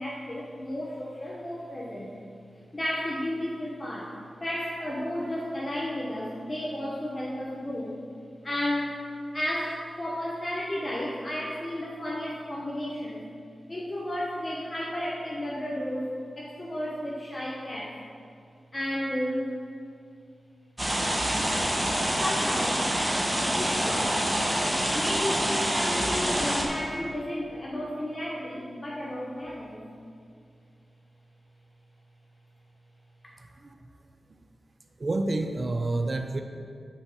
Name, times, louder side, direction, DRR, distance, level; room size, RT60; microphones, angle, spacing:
voice 1, 0.0-2.2 2.7-8.0 8.4-9.0 9.3-13.3 13.7-17.9 18.7-19.6 22.2-22.9 23.6-24.2 24.9-29.9 33.2-33.3, left 1 dB, 25° left, -4 dB, 1.0 m, -33 dB
sound 1, 20.8-26.6, equal, 10° right, 1.3 m, -26 dB
voice 2, 33.4-33.8 35.0-36.4, right 2 dB, 35° right, 6 dB, 0.5 m, -29 dB
8.6 x 5.5 x 6.2 m, 2.3 s
wide cardioid pair, 130°, 0 cm